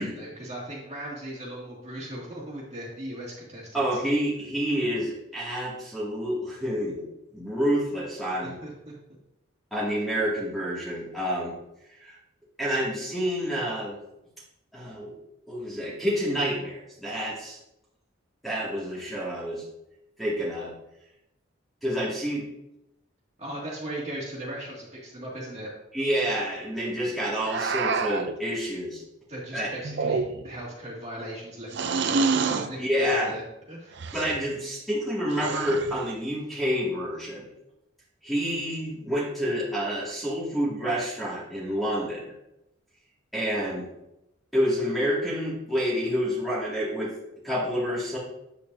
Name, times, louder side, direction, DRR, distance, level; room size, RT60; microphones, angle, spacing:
voice 1, 0.0-4.0 8.4-8.7 23.4-25.7 29.3-33.4 33.7-34.0, right 1 dB, 30° right, -5 dB, 2.3 m, -38 dB
voice 2, 3.7-7.0 7.3-8.6 9.7-11.5 11.9-12.2 12.6-14.0 14.7-15.1 15.5-17.6 18.4-19.6 20.2-20.7 21.8-22.5 25.9-29.0 29.5-29.7 32.1-32.2 32.7-33.3 34.1-37.5 38.2-42.2 43.3-43.9 44.5-47.1 47.4-48.2, equal, ahead, -7 dB, 2.2 m, -28 dB
sound 1, 27.4-28.3 29.8-30.6 31.7-32.7 34.0-34.4 35.3-36.0, right 4 dB, 55° right, 0.5 m, -27 dB
8.8 x 8.6 x 2.7 m, 0.88 s
head